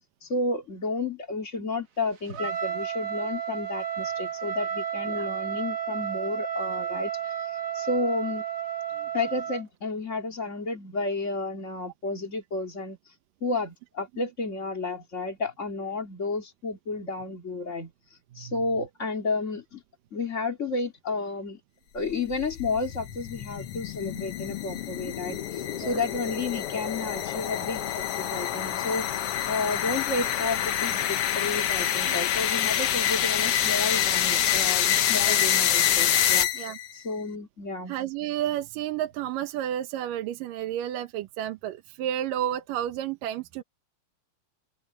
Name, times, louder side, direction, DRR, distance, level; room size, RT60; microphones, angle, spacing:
voice 1, 0.2-8.4 9.1-13.1 13.4-19.8 20.1-21.6 21.9-37.9, left 3 dB, 25° left, 2.0 m, -32 dB
Trumpet, 2.3-9.6, right 8 dB, 45° right, 2.2 m, -32 dB
sound 1, 22.1-36.9, left 10 dB, 70° left, 1.4 m, -26 dB
voice 2, 37.9-43.6, right 11 dB, 75° right, 2.6 m, -31 dB
open air
omnidirectional pair, 4.1 m